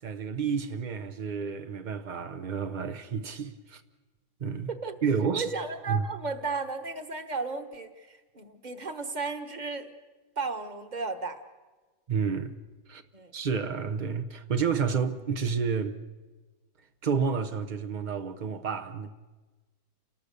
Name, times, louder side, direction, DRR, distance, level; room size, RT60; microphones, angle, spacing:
voice 1, 0.0-3.8 4.4-4.7 5.0-5.5 5.9-6.0 12.1-12.6 12.9-13.0 13.3-16.0 17.0-19.1, right 6 dB, 70° right, 0.4 m, -30 dB
voice 2, 5.3-9.9 10.4-11.4 13.1-13.3, right 4 dB, 25° right, 1.2 m, -34 dB
29.0 x 19.5 x 6.7 m
omnidirectional pair, 2.1 m